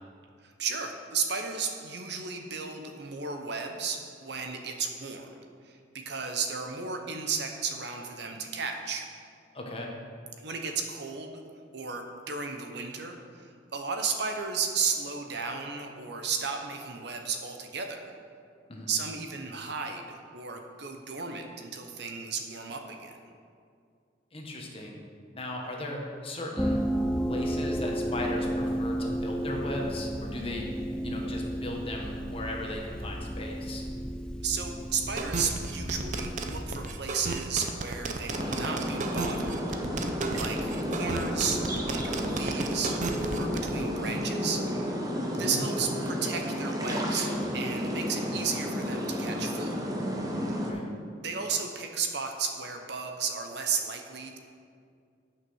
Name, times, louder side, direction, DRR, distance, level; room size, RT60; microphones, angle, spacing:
voice 1, 0.4-9.1 10.4-11.4 11.7-18.1 18.9-23.2 34.4-39.6 40.0-41.6 41.9-44.6 45.3-49.7 51.2-54.4, right 5 dB, 65° right, 4 dB, 0.9 m, -34 dB
voice 2, 9.5-9.9 18.7-18.9 24.3-24.9 25.3-26.8 27.3-30.7 31.0-33.8 45.3-45.6 50.6-50.8, left 1 dB, 30° left, 0 dB, 1.3 m, -37 dB
sound 1, 26.6-36.9, equal, 5° left, 0.3 m, -33 dB
sound 2, 35.2-43.7, right 3 dB, 40° right, 0.6 m, -33 dB
sound 3, 38.3-50.7, equal, 20° right, 1.0 m, -32 dB
9.1 x 6.1 x 6.3 m, 2.3 s
head